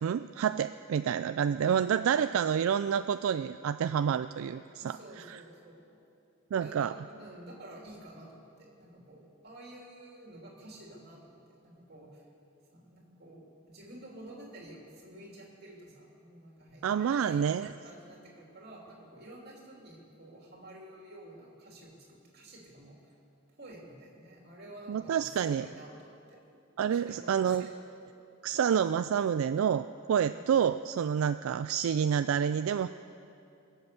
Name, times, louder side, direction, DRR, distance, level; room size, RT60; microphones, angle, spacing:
voice 1, 0.0-5.0 5.3-5.4 6.5-6.9 16.8-17.7 24.9-25.7 26.8-27.7 28.4-32.9, right 8 dB, 75° right, 11 dB, 0.3 m, -28 dB
voice 2, 1.7-2.1 4.8-5.9 6.6-6.9 7.2-12.2 12.7-23.0 23.6-26.4 27.0-27.7 30.1-30.4, right 1 dB, 50° right, -2 dB, 3.0 m, -50 dB
21.5 x 8.0 x 6.8 m, 2.6 s
head